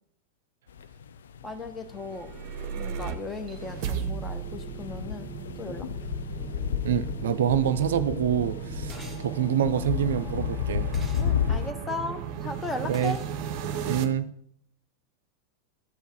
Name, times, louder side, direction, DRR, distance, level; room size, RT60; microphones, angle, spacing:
sound 1, 0.7-11.7, left 8 dB, 65° left, 0.4 m, -33 dB
voice 1, 1.4-2.3 2.6-5.9 11.2-13.2, left 2 dB, 15° left, 1.1 m, -36 dB
sound 2, 2.0-14.1, right 8 dB, 45° right, 0.8 m, -36 dB
voice 2, 6.8-10.9 12.8-13.2 13.9-14.3, right 9 dB, 60° right, 0.5 m, -26 dB
sound 3, 8.9-9.3 10.9-11.3 12.9-13.3, right 2 dB, 5° right, 1.5 m, -45 dB
13.5 x 4.6 x 4.6 m
figure-of-eight pair, 90°, 0 cm